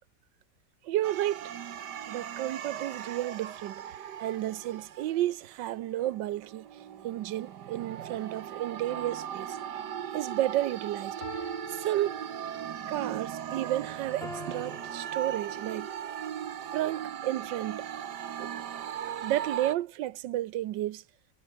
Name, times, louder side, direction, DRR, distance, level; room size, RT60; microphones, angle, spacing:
voice 1, 0.8-1.5 2.1-6.6 7.0-9.6 10.1-11.2 11.7-12.2 12.9-15.9 16.6-17.9 18.4-18.5 19.2-21.0, right 14 dB, 85° right, 1.4 m, -32 dB
sound 1, 1.0-5.4 6.0-19.7, right 9 dB, 70° right, 1.7 m, -38 dB
sound 2, 8.9-10.2 11.2-12.9 14.2-15.9 16.6-16.7, left 2 dB, 35° left, 4.5 m, -46 dB
omnidirectional pair, 1.9 m